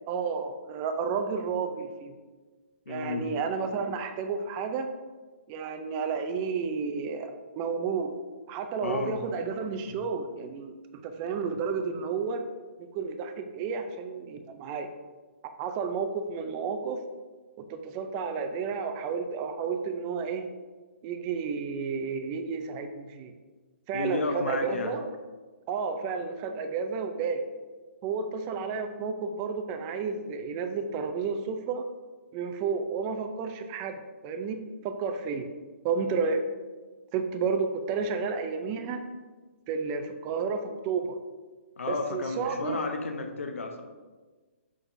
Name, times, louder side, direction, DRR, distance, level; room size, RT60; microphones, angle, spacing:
voice 1, 0.1-2.1 2.9-4.9 5.5-8.2 8.5-10.7 11.0-12.5 12.8-14.9 15.6-17.0 17.6-20.5 21.0-23.3 23.9-25.1 25.7-27.4 28.0-31.8 32.3-34.0 34.2-34.6 34.8-35.5 35.8-36.4 37.1-39.0 39.7-41.2 41.9-42.9, right 5 dB, 25° right, 7 dB, 0.4 m, -31 dB
voice 2, 2.9-3.3 8.8-9.2 9.9-10.0 23.9-24.9 41.8-43.8, left 4 dB, 80° left, 5 dB, 0.8 m, -32 dB
6.1 x 5.9 x 2.6 m, 1.3 s
hypercardioid pair, 150°, 7 cm